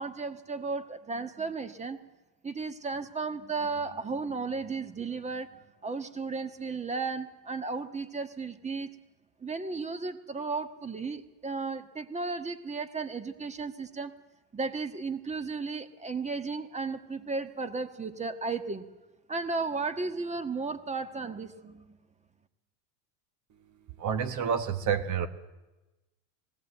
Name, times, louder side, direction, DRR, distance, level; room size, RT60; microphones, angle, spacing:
voice 1, 0.0-2.0 2.4-8.9 9.4-14.1 14.5-18.8 19.3-22.0, right 4 dB, 15° right, 9 dB, 1.5 m, -34 dB
voice 2, 24.0-25.3, right 7 dB, 40° right, 9 dB, 1.5 m, -28 dB
19.5 x 17.0 x 8.1 m, 1.1 s
supercardioid pair, 115°, 47 cm